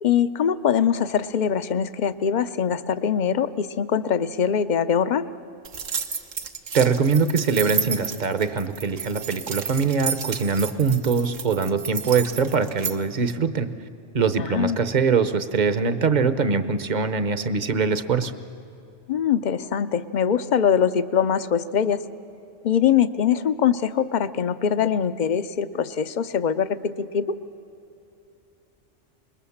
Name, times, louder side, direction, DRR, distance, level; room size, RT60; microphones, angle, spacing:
voice 1, 0.0-5.3 14.4-14.8 19.1-22.0 22.6-27.4, left 8 dB, 45° left, 13 dB, 0.7 m, -23 dB
sound 1, 5.6-13.0, right 6 dB, 85° right, 1.5 m, -31 dB
voice 2, 6.7-13.7 14.1-18.3, right 5 dB, 40° right, 12 dB, 0.9 m, -22 dB
26.5 x 21.0 x 7.2 m, 2.8 s
omnidirectional pair, 1.3 m